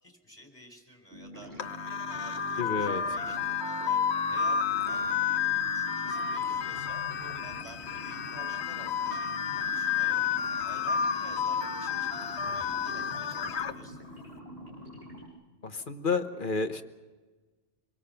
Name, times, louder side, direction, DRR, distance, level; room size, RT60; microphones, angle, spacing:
voice 1, 0.0-4.0 4.3-10.2 10.6-14.0, right 2 dB, 20° left, 3 dB, 4.6 m, -52 dB
sound 1, 1.1-15.3, equal, 55° right, 7.0 m, -46 dB
sound 2, 1.6-13.7, left 7 dB, 65° left, 1.2 m, -31 dB
voice 2, 2.6-3.2 15.6-16.8, left 4 dB, 45° left, 9 dB, 1.3 m, -31 dB
26.0 x 23.0 x 5.8 m, 1.3 s
omnidirectional pair, 1.2 m